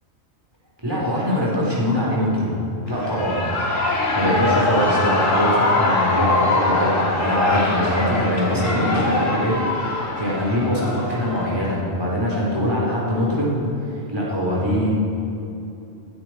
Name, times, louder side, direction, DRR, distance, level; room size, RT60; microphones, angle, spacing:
voice 1, 0.8-2.5 2.9-3.5 4.1-13.6 13.9-14.9, equal, 20° right, -6 dB, 4.3 m, -22 dB
Shout / Cheering, 2.9-11.8, left 2 dB, 80° left, 2.2 m, -23 dB
21.0 x 12.0 x 4.7 m, 2.7 s
omnidirectional pair, 1.3 m